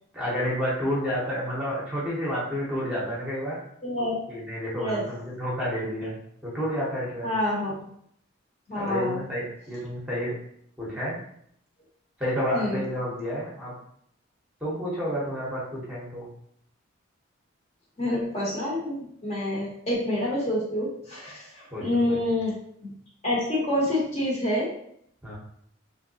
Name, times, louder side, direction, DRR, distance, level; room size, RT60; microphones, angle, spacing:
voice 1, 0.1-3.6 4.3-7.3 8.7-10.3 10.8-11.2 12.2-13.7 14.6-16.3 21.7-22.2 25.2-25.3, equal, 5° right, -6 dB, 0.8 m, -30 dB
voice 2, 3.8-4.1 4.8-5.1 7.2-7.7 8.7-9.2 12.5-12.8 18.0-22.5 22.8-22.9 23.2-24.7, left 1 dB, 30° left, -4 dB, 0.9 m, -27 dB
3.4 x 2.7 x 2.7 m, 0.69 s
head